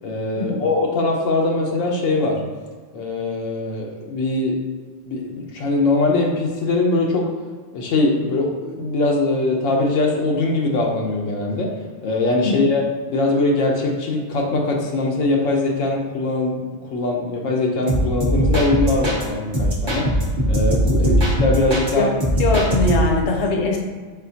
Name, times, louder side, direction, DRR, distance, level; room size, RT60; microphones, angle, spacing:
voice 1, 0.0-2.4 2.9-4.6 5.1-7.3 7.7-11.7 12.0-12.8 13.1-16.6 16.9-20.1 20.5-22.1, left 2 dB, 85° left, 0 dB, 1.0 m, -21 dB
sound 1, 17.9-19.2 19.5-21.9 22.2-23.2, equal, 30° right, 0.6 m, -20 dB
voice 2, 22.4-23.8, left 3 dB, 70° left, 1 dB, 1.0 m, -21 dB
4.1 x 3.8 x 2.7 m, 1.5 s
omnidirectional pair, 1.3 m